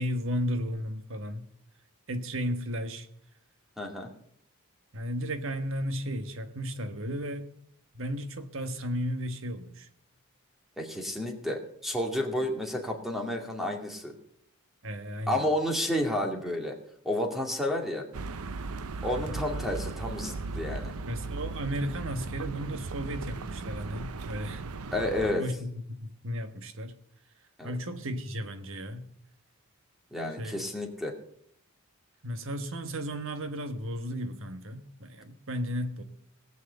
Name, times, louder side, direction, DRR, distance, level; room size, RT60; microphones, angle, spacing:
voice 1, 0.0-1.4 2.1-3.1 4.9-7.5 7.9-9.9 14.8-15.4 19.3-19.4 21.1-24.6 25.4-27.0 27.6-29.1 30.4-30.7 32.2-36.0, equal, 65° right, 1.4 m, -34 dB
voice 2, 3.8-4.1 10.8-14.1 15.3-16.8 17.0-18.0 19.0-20.9 24.9-25.4 27.6-27.7 30.1-31.1, left 1 dB, ahead, 2.2 m, -31 dB
sound 1, 18.1-25.3, right 3 dB, 85° right, 0.7 m, -37 dB
18.5 x 6.3 x 8.1 m
head